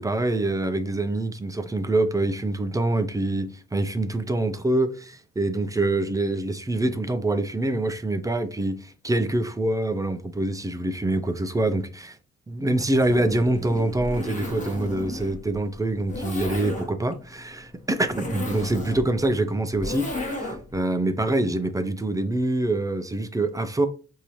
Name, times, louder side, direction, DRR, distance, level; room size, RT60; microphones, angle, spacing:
voice 1, 0.0-12.2 12.5-23.9, right 2 dB, 10° right, 0.4 m, -25 dB
Zipper (clothing), 12.8-20.8, left 1 dB, 25° left, 1.1 m, -34 dB
4.6 x 2.7 x 2.9 m
cardioid pair, 90°, 30 cm